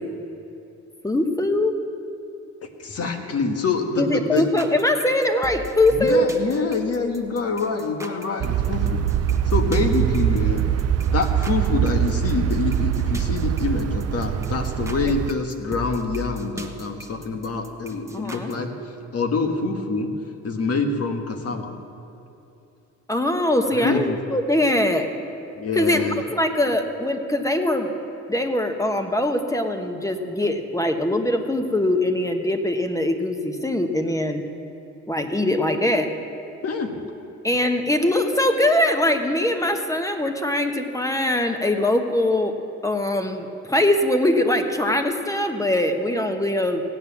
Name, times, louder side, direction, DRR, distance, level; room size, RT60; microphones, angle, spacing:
voice 1, 1.0-1.7 4.0-6.3 15.0-15.1 18.1-18.5 23.1-25.1 25.7-27.9 28.3-34.4 35.1-36.1 37.4-42.5 42.8-46.8, left 1 dB, 10° left, 6 dB, 1.2 m, -22 dB
voice 2, 2.8-4.4 5.9-9.0 9.5-10.6 11.1-18.7 19.1-20.1 20.4-21.7 23.7-24.2 25.6-26.2 36.6-37.0, left 4 dB, 55° left, 5 dB, 1.6 m, -26 dB
sound 1, 4.4-18.5, left 1 dB, 10° right, 1.1 m, -38 dB
sound 2, 8.4-15.3, right 10 dB, 55° right, 0.6 m, -23 dB
16.5 x 9.0 x 7.1 m, 2.8 s
cardioid pair, 90°, 30 cm